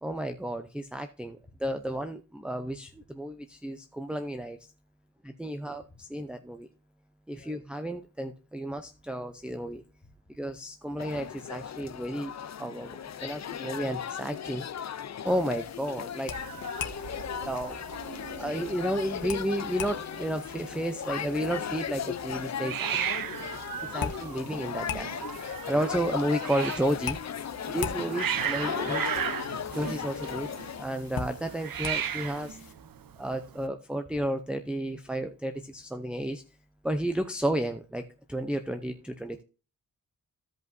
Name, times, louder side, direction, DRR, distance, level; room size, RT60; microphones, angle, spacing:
voice 1, 0.0-4.7 5.2-6.7 7.3-9.8 10.3-12.3 12.6-14.6 15.2-16.4 17.4-17.8 18.3-23.2 23.9-25.1 25.7-27.2 27.7-29.0 29.7-30.5 30.8-32.6 33.2-36.4 36.8-39.4, right 1 dB, 5° right, 0.6 m, -32 dB
sound 1, 11.0-30.9, left 8 dB, 50° left, 0.6 m, -37 dB
sound 2, 15.3-32.7, left 6 dB, 80° left, 1.2 m, -43 dB
Hiss, 16.3-33.7, right 8 dB, 75° right, 0.7 m, -37 dB
voice 2, 28.7-29.4 38.8-39.1, left 3 dB, 25° left, 1.7 m, -50 dB
15.5 x 5.3 x 2.6 m
wide cardioid pair, 120°, 34 cm